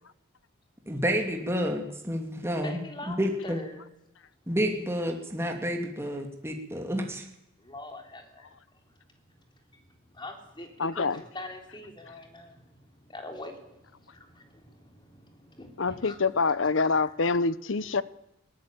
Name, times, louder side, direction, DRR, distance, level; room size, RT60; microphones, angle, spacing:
voice 1, 0.9-2.8 3.2-3.6 4.5-7.3, equal, 10° right, 2.5 m, -29 dB
voice 2, 2.6-3.2 3.4-3.8 7.6-8.5 10.2-12.6 13.1-13.6 14.4-14.6 14.9-15.1 15.6-16.2 16.7-17.3 17.9-18.0, left 2 dB, 20° left, 3.5 m, -42 dB
voice 3, 10.8-11.2 15.8-18.0, left 4 dB, 60° left, 0.8 m, -26 dB
20.5 x 17.5 x 9.0 m
head